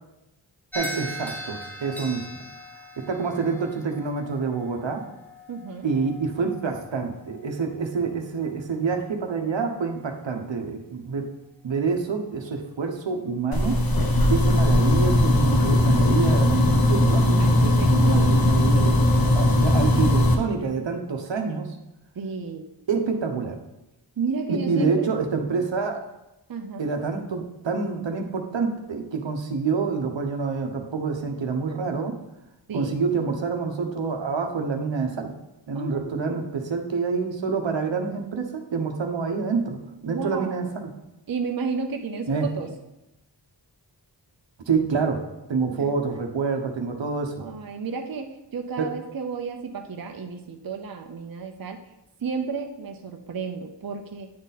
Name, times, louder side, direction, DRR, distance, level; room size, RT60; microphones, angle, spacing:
sound 1, 0.7-9.1, equal, 5° left, 1.0 m, -40 dB
voice 1, 0.7-2.3 3.0-5.0 5.8-11.3 11.6-13.8 14.3-19.0 19.3-21.8 22.9-23.6 24.5-26.0 26.8-32.2 32.7-35.3 35.7-39.8 40.0-40.9 42.3-42.5 44.7-47.4 48.8-48.9, right 5 dB, 75° right, 4 dB, 1.0 m, -27 dB
voice 2, 5.5-5.9 17.4-18.6 22.2-22.7 24.2-25.1 26.5-27.3 32.7-33.0 33.6-33.9 35.7-36.4 40.0-40.6 41.3-42.7 45.7-45.9 47.4-51.8 52.2-54.3, right 5 dB, 50° right, 4 dB, 0.7 m, -32 dB
sound 2, 13.5-20.3, left 1 dB, 50° left, 1.1 m, -19 dB
9.6 x 4.0 x 4.1 m, 0.93 s
wide cardioid pair, 55°, 45 cm